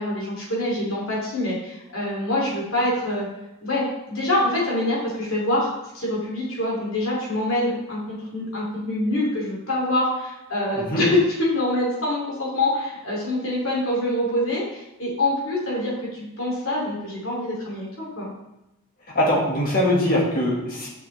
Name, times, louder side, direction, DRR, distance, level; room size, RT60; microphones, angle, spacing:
voice 1, 0.0-3.3 3.6-18.3, left 1 dB, 70° left, -4 dB, 2.8 m, -25 dB
voice 2, 19.2-20.9, left 1 dB, 40° left, -3 dB, 1.9 m, -22 dB
7.0 x 6.2 x 3.3 m, 0.92 s
head